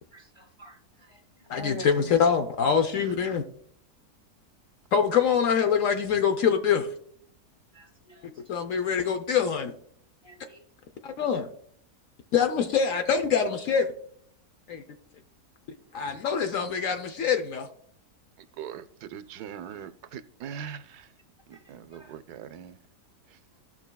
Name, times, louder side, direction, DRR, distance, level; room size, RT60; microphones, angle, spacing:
voice 1, 0.1-1.2 1.5-2.2 7.7-8.4 10.2-10.6 15.9-16.2 21.5-22.2, left 1 dB, 20° left, 0.7 m, -44 dB
voice 2, 1.5-3.4 4.9-6.9 8.5-9.7 11.0-11.5 12.3-13.9 14.7-14.8 15.9-17.7, left 7 dB, 60° left, 1.0 m, -24 dB
voice 3, 19.1-21.0 21.5-22.8, right 8 dB, 80° right, 1.1 m, -41 dB
17.5 x 6.1 x 2.2 m
omnidirectional pair, 1.7 m